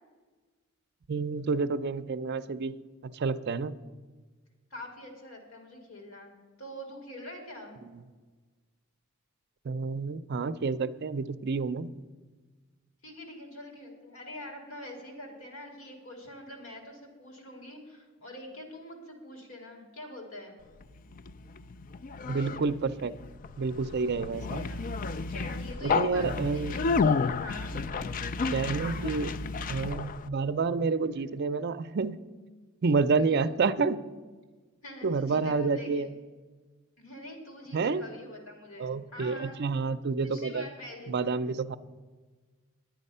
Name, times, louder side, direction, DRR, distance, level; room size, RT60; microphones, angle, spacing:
voice 1, 1.1-2.7 3.0-3.7 9.7-11.9 22.3-23.1 23.6-24.7 25.8-26.8 28.5-29.3 29.7-32.2 32.8-34.0 35.0-36.1 37.7-38.0 38.8-40.6 41.1-41.8, right 4 dB, 55° right, 14 dB, 0.5 m, -29 dB
voice 2, 4.7-6.3 6.6-7.8 13.0-20.5 24.5-24.8 25.3-26.9 27.3-27.8 28.7-29.3 33.2-33.5 34.8-36.0 37.0-39.6 40.2-41.1 41.4-41.6, left 1 dB, 70° left, 2 dB, 2.6 m, -45 dB
Conversation, 20.8-30.3, left 4 dB, 40° left, 0.3 m, -31 dB
10.5 x 9.2 x 5.5 m, 1.4 s
head